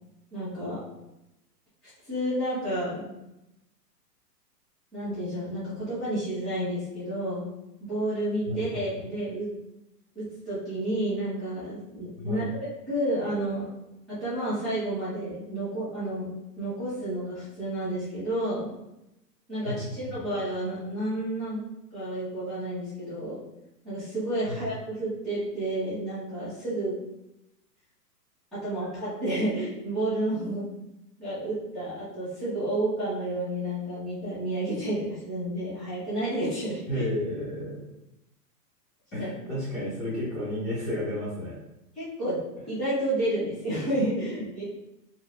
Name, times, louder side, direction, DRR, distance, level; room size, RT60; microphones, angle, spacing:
voice 1, 0.3-0.8 2.0-3.1 4.9-7.5 7.8-9.5 10.1-12.5 12.9-13.6 14.1-16.3 16.6-18.7 19.5-21.6 21.9-23.4 23.8-26.9 28.5-30.6 31.2-37.0 39.2-39.3 41.9-42.4 42.7-44.6, right 1 dB, ahead, -16 dB, 1.4 m, -30 dB
voice 2, 8.5-8.8 12.2-12.5 19.6-19.7 20.1-20.2 24.5-24.6 36.9-37.8 39.1-41.6, left 1 dB, 20° left, -11 dB, 1.4 m, -32 dB
4.2 x 2.7 x 2.6 m, 0.91 s
hypercardioid pair, 160°, 49 cm